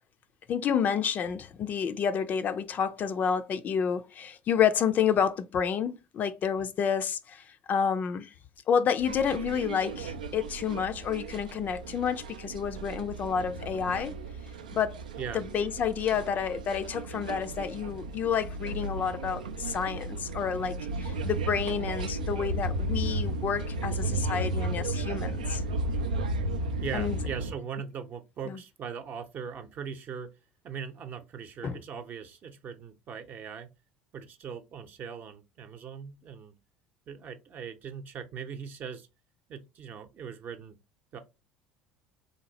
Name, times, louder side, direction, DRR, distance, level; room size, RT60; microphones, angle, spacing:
voice 1, 0.5-8.3 8.7-14.2 14.7-15.0 15.3-25.6 26.9-27.2 28.5-28.6 31.6-31.8, left 7 dB, 40° left, 0.4 m, -29 dB
sound 1, 9.0-27.5, right 2 dB, 85° right, 0.4 m, -34 dB
voice 2, 26.8-30.3 30.6-33.7 34.1-36.5 37.1-39.1 39.5-40.8 41.1-41.2, right 7 dB, 45° right, 0.7 m, -40 dB
3.8 x 2.9 x 2.8 m
hypercardioid pair, 65°, 4 cm